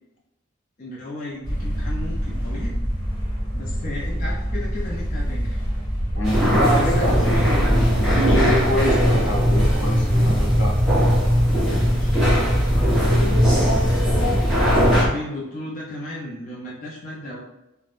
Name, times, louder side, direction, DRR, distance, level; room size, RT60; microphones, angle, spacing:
voice 1, 0.8-2.7 3.5-5.6 6.7-7.8 11.9-13.5 14.5-17.4, left 1 dB, 35° left, -5 dB, 0.4 m, -35 dB
sound 1, 1.4-15.1, equal, 20° left, 0.9 m, -25 dB
voice 2, 6.1-7.6 8.0-10.7 14.2-14.5, equal, 65° left, -2 dB, 0.7 m, -26 dB
sound 2, 6.2-15.0, equal, 5° right, 1.0 m, -19 dB
2.4 x 2.0 x 3.3 m, 0.94 s
head